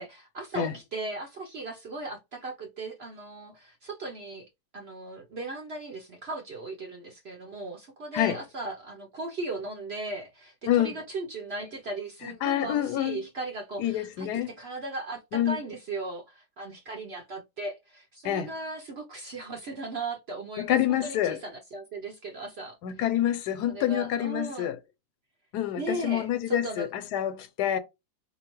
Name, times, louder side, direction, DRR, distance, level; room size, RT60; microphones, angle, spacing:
voice 1, 0.0-4.5 4.7-22.8 23.7-24.7 25.8-26.9, right 2 dB, 55° right, 0.7 m, -37 dB
voice 2, 10.7-11.0 12.4-13.2 13.8-14.5 15.3-15.6 18.2-18.5 20.6-21.4 22.8-24.8 25.5-27.8, left 11 dB, 85° left, 1.2 m, -27 dB
4.2 x 2.7 x 3.0 m
omnidirectional pair, 1.7 m